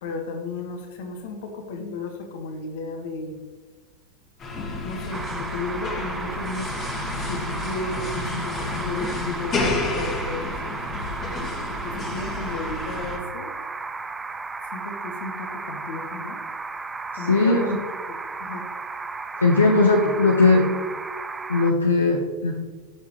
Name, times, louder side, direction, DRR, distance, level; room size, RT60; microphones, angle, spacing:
voice 1, 0.0-3.4 4.8-6.7 7.2-10.6 11.7-13.5 14.7-16.4 17.2-17.8 18.1-18.7, left 3 dB, 55° left, 4 dB, 1.7 m, -34 dB
sound 1, 4.4-13.2, left 2 dB, 30° left, 2.2 m, -30 dB
sound 2, 5.1-21.7, right 4 dB, 15° right, 0.5 m, -34 dB
voice 2, 17.3-17.6 19.4-20.7 21.5-22.5, left 3 dB, 75° left, 1 dB, 1.1 m, -18 dB
14.0 x 7.2 x 3.2 m, 1.3 s
figure-of-eight pair, 90°, 0 cm